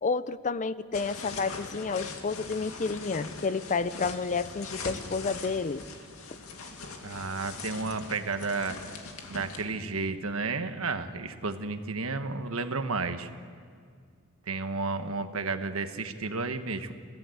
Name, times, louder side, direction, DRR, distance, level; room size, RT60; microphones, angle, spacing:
voice 1, 0.0-5.8, left 4 dB, 35° left, 15 dB, 0.6 m, -30 dB
sound 1, 0.9-9.6, left 3 dB, 80° left, 2.3 m, -41 dB
voice 2, 7.0-8.8 9.3-13.3 14.5-16.9, right 3 dB, 75° right, 8 dB, 1.4 m, -32 dB
29.5 x 16.0 x 8.0 m, 2.1 s
head